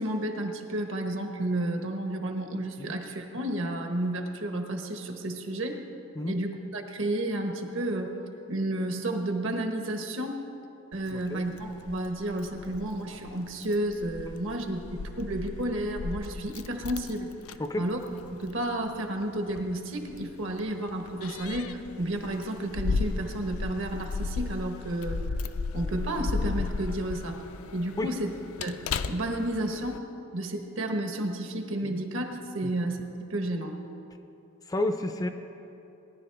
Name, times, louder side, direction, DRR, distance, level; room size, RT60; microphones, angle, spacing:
voice 1, 0.0-5.8 6.3-8.2 8.5-10.4 10.9-14.8 15.2-17.3 17.8-18.0 18.4-25.2 25.7-27.4 27.7-28.3 28.6-28.8 29.1-30.0 30.3-33.0 33.3-33.8, right 1 dB, 65° right, 4 dB, 1.2 m, -31 dB
Keys jangling, 10.9-30.0, left 4 dB, 80° left, 0.4 m, -36 dB
voice 2, 11.1-11.4 17.6-17.9 28.0-28.1 31.8-32.0 32.6-32.7 34.7-35.3, left 1 dB, 15° left, 7 dB, 0.4 m, -31 dB
18.5 x 10.5 x 3.4 m, 2.8 s
head